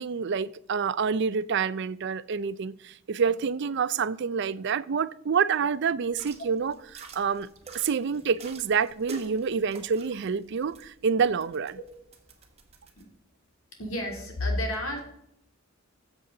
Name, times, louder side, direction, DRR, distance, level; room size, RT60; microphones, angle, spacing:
voice 1, 0.0-7.5 7.7-11.8, right 6 dB, 55° right, 0.4 m, -27 dB
sound 1, 6.1-13.0, right 4 dB, 30° right, 1.4 m, -48 dB
voice 2, 13.8-15.0, left 1 dB, 75° left, 3.0 m, -30 dB
14.0 x 7.3 x 3.8 m
head